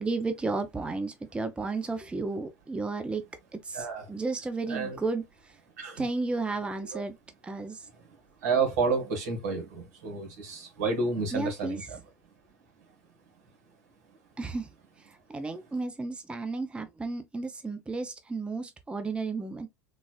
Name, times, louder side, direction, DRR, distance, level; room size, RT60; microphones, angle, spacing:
voice 1, 0.0-3.2 3.6-5.6 6.0-7.2 7.4-7.9 11.3-11.8 14.4-14.7 15.0-19.7, right 3 dB, 10° right, 0.5 m, -33 dB
voice 2, 3.7-4.1 4.7-5.0 5.8-6.0 6.9-7.0 7.9-12.0, right 4 dB, 75° right, 1.5 m, -30 dB
3.9 x 2.4 x 2.2 m
hypercardioid pair, 90°, 9 cm